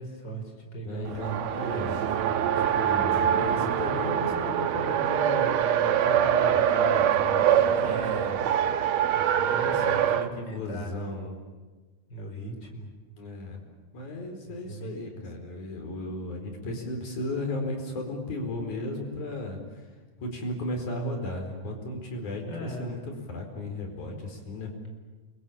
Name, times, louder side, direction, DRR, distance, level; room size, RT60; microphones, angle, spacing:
voice 1, 0.0-1.5 7.7-8.7 9.1-10.1 10.4-11.1 12.1-12.9 14.5-15.2 22.5-23.0, right 1 dB, 35° left, 3 dB, 5.4 m, -39 dB
voice 2, 0.8-2.0 2.5-8.0 9.3-11.3 13.2-13.6 13.9-19.9 20.2-24.7, left 2 dB, 80° left, 3 dB, 6.0 m, -35 dB
Race car auto racing, 1.0-10.3, right 9 dB, 70° right, 2.3 m, -24 dB
29.0 x 23.0 x 8.9 m, 1.3 s
omnidirectional pair, 3.4 m